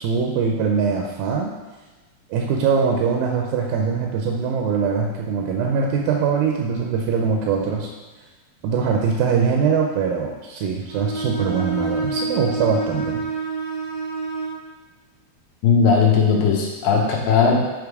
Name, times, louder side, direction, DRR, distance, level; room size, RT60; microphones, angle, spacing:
voice 1, 0.0-1.5 2.3-7.9 8.6-13.2, right 6 dB, 80° right, 1 dB, 2.3 m, -22 dB
Bowed string instrument, 10.9-14.7, right 3 dB, 5° left, 0.7 m, -27 dB
voice 2, 15.6-17.6, left 5 dB, 75° left, -1 dB, 2.6 m, -17 dB
8.9 x 3.6 x 4.7 m, 1.2 s
omnidirectional pair, 4.2 m